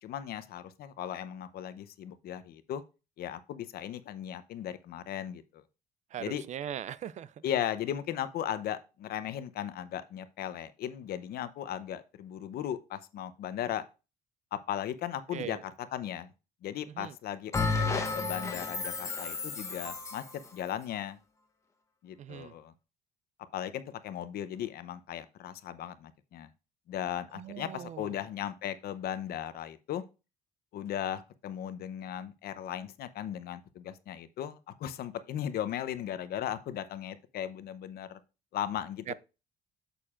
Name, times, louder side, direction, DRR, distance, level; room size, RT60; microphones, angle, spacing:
voice 1, 0.0-2.8 3.2-5.6 6.2-6.4 7.4-13.8 14.5-16.3 16.6-20.2 20.5-21.2 22.0-22.7 23.5-26.5 26.9-30.0 30.7-38.2 38.5-39.1, left 10 dB, 65° left, 0.8 m, -37 dB
voice 2, 6.1-7.3 15.3-15.6 17.0-17.1 22.2-22.5 27.3-28.2 39.1-39.2, right 10 dB, 45° right, 0.4 m, -40 dB
Bell, 17.5-20.3, left 3 dB, 15° left, 0.9 m, -32 dB
8.7 x 6.8 x 2.5 m
cardioid pair, 110°, 17 cm